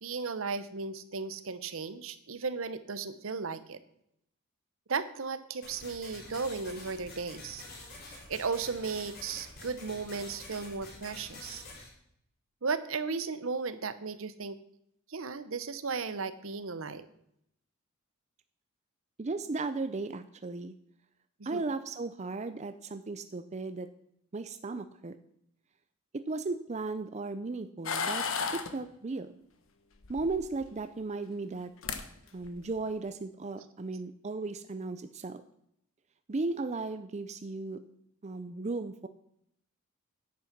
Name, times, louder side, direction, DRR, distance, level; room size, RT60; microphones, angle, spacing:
voice 1, 0.0-3.8 4.9-7.6 8.1-11.6 12.6-14.6 15.1-17.1 21.5-21.6, right 4 dB, 65° right, 13 dB, 0.8 m, -35 dB
sound 1, 5.6-11.9, left 2 dB, 50° left, 3.8 m, -48 dB
voice 2, 19.2-20.7 21.5-23.9 24.3-25.1 26.3-28.2 28.5-29.3 30.1-31.7 32.3-35.4 36.3-37.8 38.2-39.1, right 3 dB, 30° right, 10 dB, 0.5 m, -36 dB
sound 2, 27.9-28.7 30.0-30.7 31.6-31.7 31.8-32.0 32.4-32.8, left 5 dB, 65° left, 1.2 m, -33 dB
10.5 x 8.6 x 6.0 m, 0.74 s
head